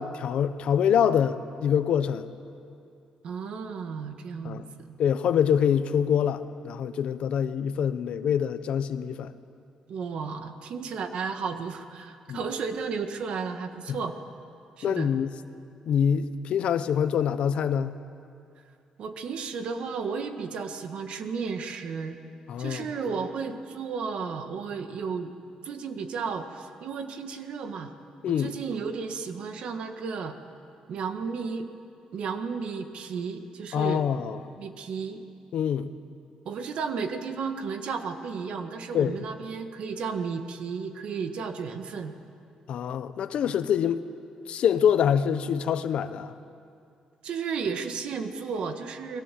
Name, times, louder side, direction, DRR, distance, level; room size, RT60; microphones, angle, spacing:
voice 1, 0.0-2.3 4.4-4.7 5.0-9.3 12.3-12.4 14.8-15.3 15.9-17.9 22.5-22.9 28.2-28.5 33.7-34.4 35.5-35.9 38.9-39.2 42.7-44.0 44.5-46.3, left 8 dB, 60° left, 11 dB, 1.0 m, -25 dB
voice 2, 3.2-5.0 9.9-14.2 14.8-15.1 19.0-22.2 22.6-25.3 25.6-28.0 28.3-30.4 30.9-31.7 32.1-34.0 34.6-35.2 36.5-42.1 47.2-49.2, right 5 dB, 60° right, 7 dB, 1.7 m, -33 dB
29.5 x 21.5 x 7.7 m, 2.5 s
cardioid pair, 180°, 2 cm